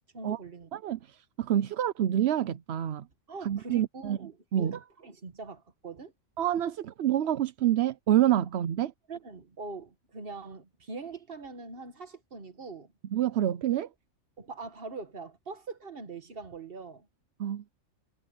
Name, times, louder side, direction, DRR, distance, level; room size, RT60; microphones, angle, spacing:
voice 1, 0.1-0.7 3.3-6.1 9.1-12.9 14.4-17.1, right 3 dB, 45° right, 1.8 m, -42 dB
voice 2, 0.7-3.1 3.4-4.2 4.5-4.8 6.4-8.9 13.1-13.9 17.4-17.6, right 11 dB, 60° right, 0.8 m, -27 dB
omnidirectional pair, 1.4 m